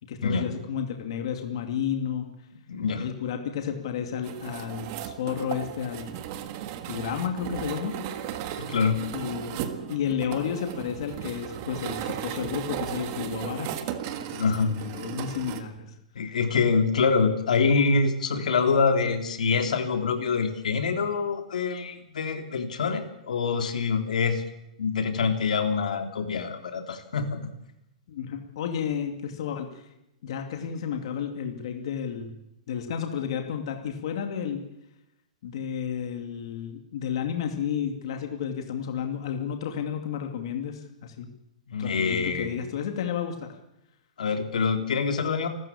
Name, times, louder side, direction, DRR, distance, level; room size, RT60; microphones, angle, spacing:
voice 1, 0.0-2.3 3.0-6.1 6.9-8.0 9.1-9.6 9.9-13.7 14.3-15.9 28.1-29.9 30.2-32.3 32.7-34.6 35.4-41.3 41.8-43.5, left 8 dB, 45° left, 4 dB, 2.5 m, -32 dB
voice 2, 2.7-3.0 8.6-9.0 14.4-14.7 16.2-24.4 24.8-27.4 41.7-42.5 44.2-45.5, left 5 dB, 90° left, 5 dB, 3.4 m, -25 dB
sound 1, 4.2-15.6, right 10 dB, 30° right, 1.6 m, -36 dB
29.0 x 13.5 x 8.6 m, 0.86 s
hypercardioid pair, 180°, 4 cm